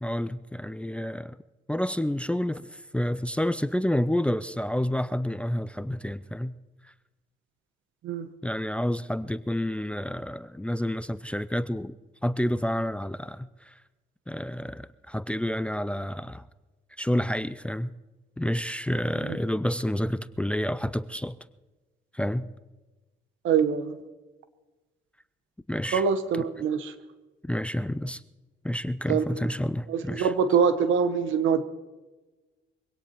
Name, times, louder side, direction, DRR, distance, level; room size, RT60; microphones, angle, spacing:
voice 1, 0.0-1.4 1.7-6.5 8.4-11.9 12.2-13.7 14.3-16.4 17.0-17.9 18.4-21.4 22.1-22.5 25.7-26.0 27.4-28.2 28.6-30.3, left 1 dB, 5° left, 0.4 m, -29 dB
voice 2, 23.4-24.0 25.9-26.9 29.1-29.4 29.9-31.7, right 6 dB, 85° right, 1.1 m, -24 dB
23.5 x 17.5 x 3.0 m
cardioid pair, 90°, 20 cm